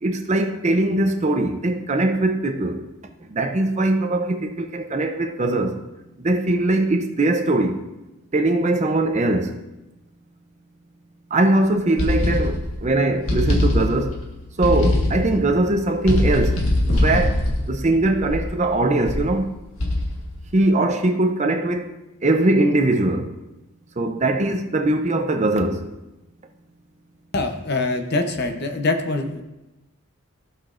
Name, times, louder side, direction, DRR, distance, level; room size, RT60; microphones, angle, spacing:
voice 1, 0.0-2.8 3.3-5.8 6.2-7.8 8.3-9.6 11.3-14.2 14.6-16.6 16.9-17.4 17.7-19.5 20.5-21.9 22.2-23.3 24.0-25.9, right 2 dB, 30° right, 0.6 m, -21 dB
sound 1, 12.0-12.8 13.3-14.2 14.6-15.4 16.0-18.6 19.1-19.4 19.8-20.3, left 1 dB, 70° left, 1.5 m, -21 dB
voice 2, 27.3-29.4, left 2 dB, 45° left, 0.8 m, -24 dB
15.0 x 6.0 x 2.5 m
head